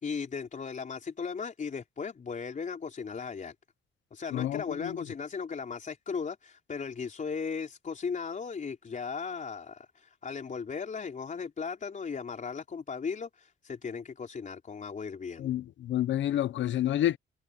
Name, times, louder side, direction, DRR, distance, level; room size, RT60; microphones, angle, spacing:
voice 1, 0.0-3.5 4.1-15.5, left 5 dB, 40° left, 4.1 m, -37 dB
voice 2, 4.3-5.0 15.4-17.2, left 12 dB, 70° left, 0.9 m, -29 dB
cardioid pair, 90°, 20 cm